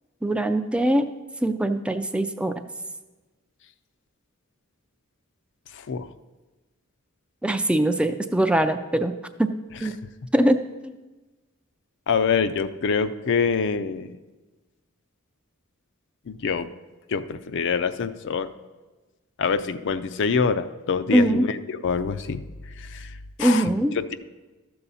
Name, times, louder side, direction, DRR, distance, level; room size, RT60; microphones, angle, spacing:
voice 1, 0.2-1.0 1.4-2.5 7.4-9.1 9.4-9.5 9.8-9.9 10.3-10.6 21.1-21.5 23.4-23.9, right 1 dB, 5° right, 7 dB, 0.3 m, -21 dB
voice 2, 12.1-14.1 16.3-16.7 17.1-18.5 19.4-22.4 23.4-23.7, left 5 dB, 60° left, 11 dB, 0.4 m, -25 dB
13.0 x 6.8 x 4.2 m, 1.2 s
head